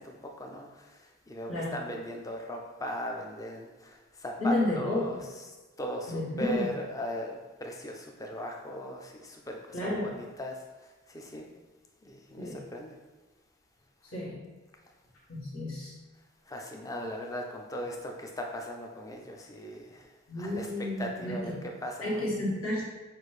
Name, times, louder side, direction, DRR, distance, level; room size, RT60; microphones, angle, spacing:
voice 1, 0.0-5.4 5.8-11.5 12.0-13.0 16.5-20.1 20.4-22.2, equal, 15° left, 1 dB, 0.4 m, -38 dB
voice 2, 4.4-5.2 6.1-6.7 9.7-10.1 12.4-12.6 14.1-14.4 15.3-15.9 20.3-21.4 22.0-22.8, left 1 dB, 90° left, -5 dB, 1.4 m, -31 dB
5.9 x 2.6 x 3.2 m, 1.2 s
head